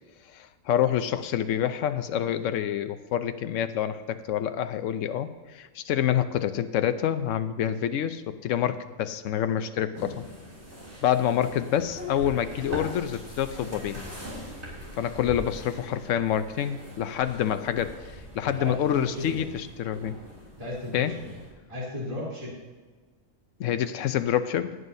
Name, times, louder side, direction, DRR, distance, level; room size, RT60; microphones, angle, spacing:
voice 1, 0.3-10.2 11.0-14.0 15.0-18.0 18.3-20.2 20.9-21.2 23.6-24.8, left 10 dB, 75° left, 10 dB, 1.0 m, -27 dB
sound 1, 9.9-21.5, equal, 55° right, 3.3 m, -42 dB
voice 2, 18.5-19.5 20.6-21.4 21.7-22.5, left 1 dB, 25° right, -6 dB, 3.5 m, -35 dB
17.5 x 9.3 x 2.7 m, 1.4 s
omnidirectional pair, 1.4 m